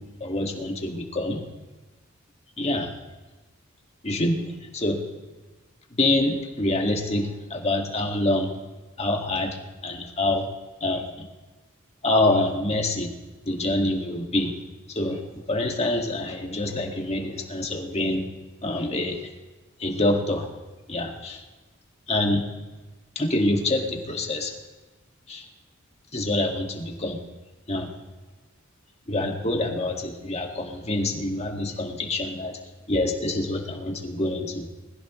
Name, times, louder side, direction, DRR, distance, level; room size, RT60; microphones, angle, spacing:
voice 1, 0.2-1.4 2.6-2.9 4.0-5.0 5.9-8.5 9.0-10.5 10.8-11.2 12.0-13.1 13.5-14.5 14.9-18.3 18.6-19.2 19.8-20.5 20.9-21.4 22.1-22.5 23.2-24.5 25.3-25.5 26.1-27.2 27.7-27.9 29.1-32.6 32.9-34.7, left 1 dB, 30° left, 2 dB, 1.9 m, -26 dB
21.5 x 15.5 x 3.1 m, 1.2 s
head